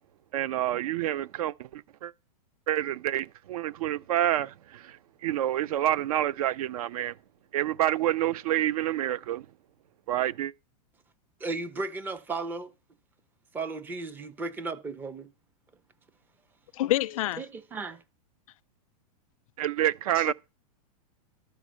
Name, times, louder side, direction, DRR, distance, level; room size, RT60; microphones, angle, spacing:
voice 1, 0.3-2.1 2.7-5.0 5.2-7.1 7.5-9.5 10.1-10.5 19.6-20.3, right 12 dB, 65° right, 0.5 m, -28 dB
voice 2, 11.4-12.7 13.5-15.3 17.4-18.0, right 3 dB, 10° right, 0.5 m, -35 dB
voice 3, 16.7-17.4 20.3-20.4, left 15 dB, 60° left, 0.4 m, -27 dB
12.5 x 4.5 x 6.2 m
supercardioid pair, 160°, 20 cm